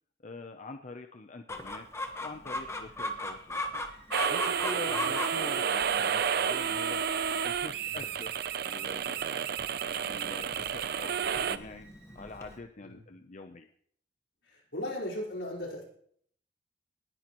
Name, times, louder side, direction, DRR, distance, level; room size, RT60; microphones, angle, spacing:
voice 1, 0.2-1.9 2.2-7.0 7.4-8.3 8.6-9.5 9.9-11.9 12.1-13.7, left 3 dB, 40° left, 6 dB, 0.6 m, -45 dB
Chicken rooster, 1.5-12.6, left 1 dB, 15° left, 1.2 m, -39 dB
Bowed string instrument, 3.8-12.6, right 4 dB, 35° right, 4.5 m, -60 dB
sound 1, 4.1-11.6, right 7 dB, 60° right, 0.5 m, -31 dB
voice 2, 14.4-15.8, left 1 dB, 80° left, -3 dB, 4.5 m, -38 dB
19.0 x 10.5 x 3.0 m, 0.63 s
head